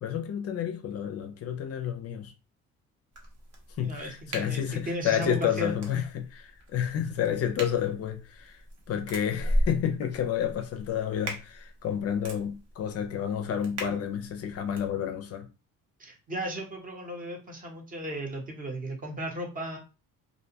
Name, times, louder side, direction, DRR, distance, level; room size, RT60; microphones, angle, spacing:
voice 1, 0.0-2.3 3.8-15.5, left 9 dB, 45° left, 0.4 m, -30 dB
sound 1, 3.1-14.9, equal, 50° right, 0.9 m, -37 dB
voice 2, 3.8-5.7 16.0-19.8, right 1 dB, 25° right, 0.8 m, -35 dB
2.6 x 2.1 x 2.7 m
cardioid pair, 120°, 33 cm